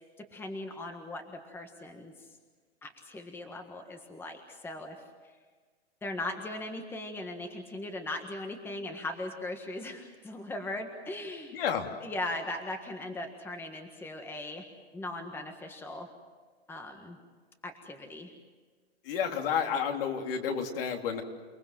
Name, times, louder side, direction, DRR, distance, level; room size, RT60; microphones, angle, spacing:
voice 1, 0.2-2.3 2.8-5.0 6.0-11.6 12.0-14.6 14.9-16.1 16.7-17.2 17.6-18.3, left 2 dB, 5° left, 5 dB, 1.6 m, -39 dB
voice 2, 11.5-11.9 19.0-21.2, left 7 dB, 60° left, 3 dB, 3.4 m, -30 dB
29.0 x 19.5 x 7.7 m, 1.5 s
hypercardioid pair, 150°, 32 cm